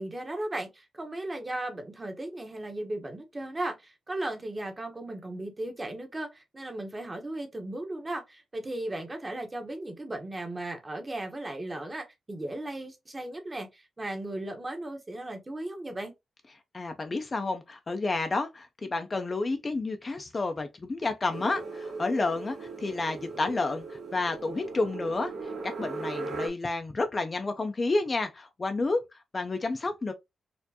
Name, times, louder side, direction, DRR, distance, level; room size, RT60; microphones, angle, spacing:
voice 1, 0.0-16.1, right 1 dB, 20° right, 0.9 m, -36 dB
voice 2, 16.7-25.3 25.8-29.0 29.3-30.1, left 3 dB, 30° left, 0.5 m, -30 dB
sound 1, 21.3-26.5, right 3 dB, 80° right, 1.6 m, -38 dB
4.3 x 2.5 x 2.7 m
wide cardioid pair, 120°, 0 cm